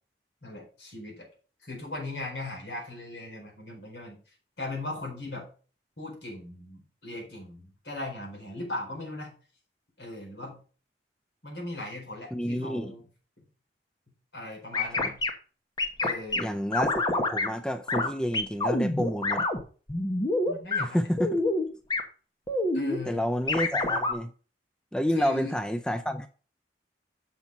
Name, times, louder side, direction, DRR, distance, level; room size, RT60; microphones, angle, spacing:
voice 1, 0.4-1.3 1.6-4.2 4.6-5.5 6.0-9.3 10.0-10.6 11.4-13.1 14.3-15.2 16.0-16.6 20.5-21.1 22.7-23.2 25.1-25.5, left 2 dB, 70° left, 4.4 m, -38 dB
voice 2, 12.3-12.9 15.0-15.1 16.4-19.5 20.8-21.4 23.1-24.3 24.9-26.3, equal, 5° left, 0.4 m, -29 dB
sound 1, 14.7-15.3 15.8-16.4 16.7-17.5 17.9-18.1 18.3-19.6 19.9-20.8 21.2-21.6 21.9-22.0 22.5-23.0 23.5-24.1, left 2 dB, 25° left, 1.0 m, -26 dB
7.0 x 6.0 x 5.3 m
head